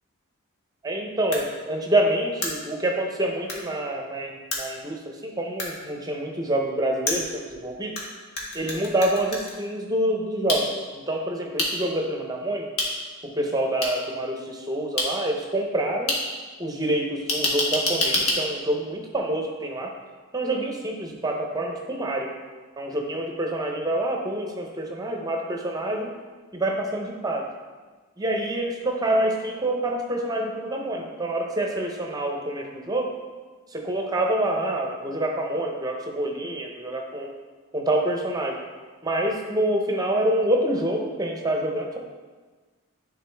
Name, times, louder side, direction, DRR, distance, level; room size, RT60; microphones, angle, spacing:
voice 1, 0.8-8.0 8.5-12.7 13.2-16.1 16.6-19.9 20.3-22.3 22.8-26.1 26.5-27.5 28.2-33.1 33.7-37.3 37.7-38.6 39.0-42.0, right 1 dB, 15° right, 1 dB, 0.6 m, -27 dB
sound 1, 1.3-1.4 2.4-2.5 3.5-3.6 4.5-4.6 5.6-5.7 7.1-8.0 8.4-9.5 10.5-10.6 11.6-11.7 12.8-12.9 13.8-13.9 15.0-15.1 16.1-16.2 17.3-18.4, left 2 dB, 85° left, 1.4 m, -25 dB
10.0 x 3.8 x 3.3 m, 1.4 s
head